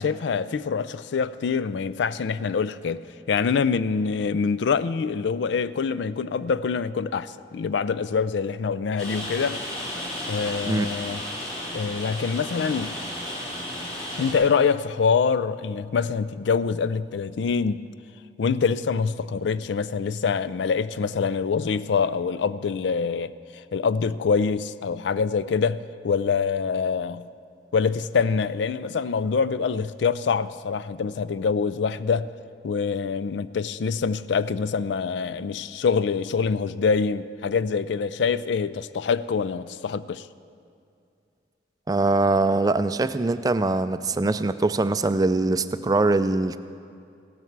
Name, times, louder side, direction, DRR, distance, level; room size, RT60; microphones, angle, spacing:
voice 1, 0.0-9.6 10.3-11.2 11.7-12.9 14.2-17.9 18.4-27.3 27.7-32.3 32.6-40.3, left 5 dB, 80° left, 0.4 m, -25 dB
Rain, 9.0-14.3, left 1 dB, 40° left, 3.2 m, -33 dB
voice 2, 41.9-46.6, right 2 dB, 20° right, 0.3 m, -22 dB
16.0 x 13.0 x 4.7 m
head